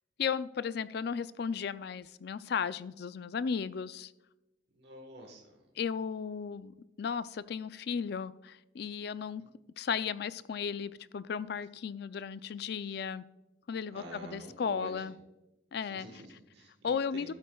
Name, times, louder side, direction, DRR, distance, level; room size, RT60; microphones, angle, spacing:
voice 1, 0.2-4.1 5.8-9.4 9.8-13.3 13.7-15.1 15.7-16.1 16.8-17.3, left 6 dB, 55° left, 15 dB, 0.4 m, -35 dB
voice 2, 4.7-5.7 9.4-9.5 12.9-13.0 13.9-15.1 15.9-17.3, right 1 dB, 60° right, 1 dB, 1.4 m, -48 dB
12.0 x 8.3 x 2.3 m, 0.97 s
head